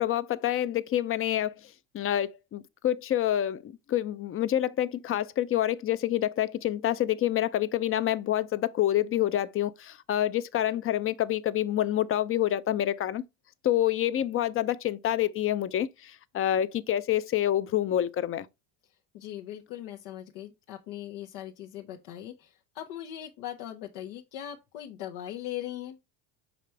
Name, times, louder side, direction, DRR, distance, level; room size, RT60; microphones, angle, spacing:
voice 1, 0.0-1.6 1.9-13.2 13.6-18.5, left 12 dB, 35° left, 0.5 m, -27 dB
voice 2, 18.9-26.0, left 12 dB, 85° left, 1.0 m, -40 dB
5.8 x 5.1 x 3.2 m
supercardioid pair, 110°, 41 cm